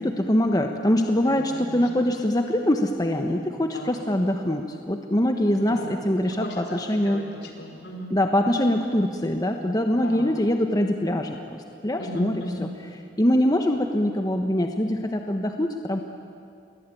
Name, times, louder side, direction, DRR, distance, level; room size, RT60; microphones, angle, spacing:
voice 1, 0.0-7.3 8.1-12.7 13.2-16.0, left 1 dB, 20° left, 4 dB, 1.2 m, -23 dB
voice 2, 1.2-1.8 3.7-3.9 5.5-8.1 10.0-10.3 12.0-12.7, left 1 dB, 65° left, 3 dB, 5.0 m, -36 dB
29.0 x 22.5 x 9.2 m, 2.6 s
head